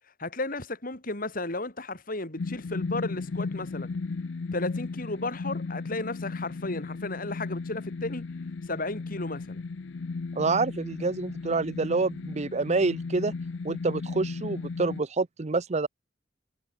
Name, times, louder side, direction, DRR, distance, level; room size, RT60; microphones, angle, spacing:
voice 1, 0.2-3.9 4.5-8.3 8.7-9.6, left 2 dB, 50° left, 4.7 m, -34 dB
sound 1, 2.4-15.0, left 4 dB, 80° left, 0.6 m, -35 dB
voice 2, 10.4-13.3 13.6-15.9, right 3 dB, 40° right, 0.6 m, -27 dB
head